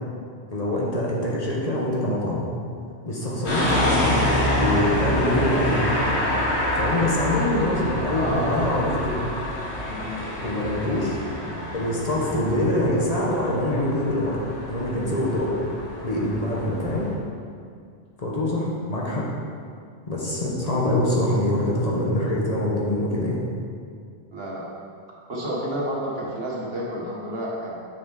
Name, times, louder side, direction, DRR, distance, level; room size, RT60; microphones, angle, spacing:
voice 1, 0.5-2.4 3.0-6.0 6.7-9.2 10.4-11.2 11.7-14.4 14.7-15.5 16.0-17.1 18.2-19.2 20.1-23.4, left 1 dB, 35° left, -4 dB, 1.1 m, -24 dB
sound 1, 3.4-17.1, left 1 dB, 75° left, 1.7 m, -27 dB
voice 2, 8.1-8.8 9.9-10.1 24.3-24.6 25.3-27.7, right 1 dB, 65° right, -4 dB, 1.6 m, -30 dB
6.9 x 6.1 x 4.0 m, 2.2 s
omnidirectional pair, 1.1 m